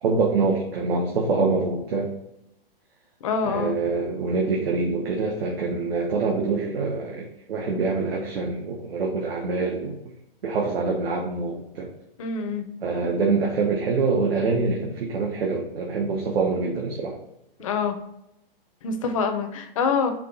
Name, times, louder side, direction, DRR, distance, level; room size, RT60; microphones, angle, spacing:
voice 1, 0.0-2.1 3.4-10.0 10.4-11.9 12.8-17.2, right 4 dB, 80° right, -1 dB, 1.0 m, -25 dB
voice 2, 3.2-3.8 12.2-12.7 17.6-18.0 18.8-20.1, left 5 dB, 35° left, 6 dB, 0.5 m, -25 dB
4.6 x 2.9 x 4.0 m, 0.83 s
hypercardioid pair, 165°, 30 cm